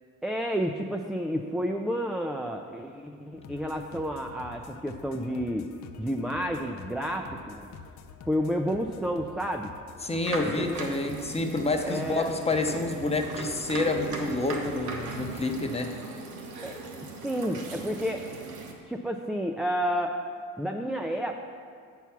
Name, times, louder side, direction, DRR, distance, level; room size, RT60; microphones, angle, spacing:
voice 1, 0.2-5.7 6.0-7.7 8.3-9.7 10.4-11.1 11.8-12.3 16.6-16.8 17.2-18.2 18.9-20.1 20.6-21.5, equal, ahead, 2 dB, 0.4 m, -30 dB
sound 1, 3.4-15.6, left 5 dB, 65° left, 0.6 m, -47 dB
voice 2, 10.0-15.9, left 2 dB, 20° left, 4 dB, 0.8 m, -28 dB
sound 2, 10.1-18.7, right 3 dB, 75° right, 1.2 m, -39 dB
8.1 x 4.7 x 5.7 m, 2.1 s
cardioid pair, 90°, 30 cm